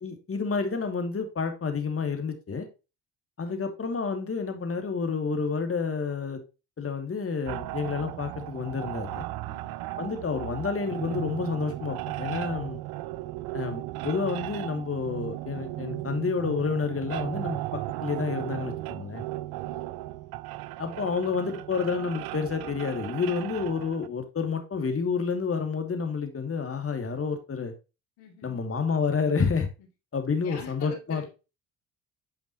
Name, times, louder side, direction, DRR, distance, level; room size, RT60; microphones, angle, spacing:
voice 1, 0.0-2.7 3.4-6.4 6.8-9.2 10.0-12.8 13.5-19.2 20.8-27.7 28.4-29.7 30.1-31.2, left 5 dB, 35° left, 6 dB, 2.6 m, -29 dB
sound 1, 7.5-24.1, right 17 dB, 75° right, 0.6 m, -36 dB
voice 2, 9.5-9.8 19.6-19.9 28.2-28.7 30.4-31.3, left 7 dB, 85° left, 3 dB, 2.5 m, -45 dB
9.4 x 5.2 x 3.0 m, 0.29 s
supercardioid pair, 65°, 37 cm